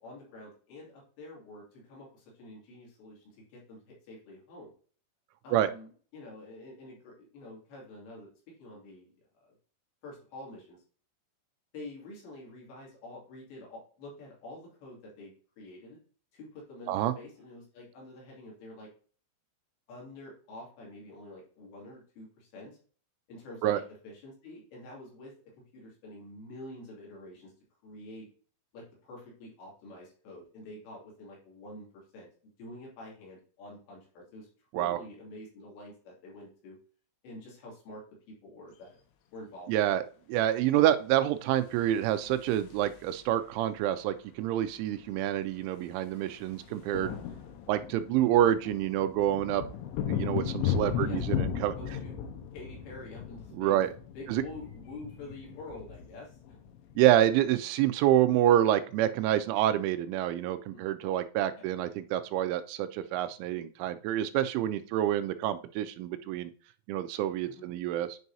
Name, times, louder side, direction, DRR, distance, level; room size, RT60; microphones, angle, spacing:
voice 1, 0.0-4.7 5.4-9.1 9.5-9.6 10.0-10.8 11.7-16.0 16.3-18.9 19.9-22.8 23.3-25.3 25.7-27.5 27.8-28.3 28.7-31.9 32.1-32.3 32.6-34.5 34.7-36.8 37.2-38.0 38.3-39.0 39.3-39.7 48.1-48.3 50.8-51.3 51.8-52.1 52.5-53.8 54.1-56.6 60.7-60.8 61.6-61.7 67.5-67.6, left 1 dB, 65° left, -3 dB, 4.7 m, -47 dB
voice 2, 39.7-40.0 40.3-47.1 47.7-49.6 50.1-51.8 53.6-53.9 54.3-54.4 57.0-66.5 66.9-68.2, right 12 dB, 85° right, 10 dB, 3.0 m, -27 dB
sound 1, 41.7-43.3 44.6-44.7 44.9-45.1 45.4-57.5, left 9 dB, 85° left, 3.4 m, -36 dB
9.4 x 5.4 x 2.7 m, 0.42 s
omnidirectional pair, 5.4 m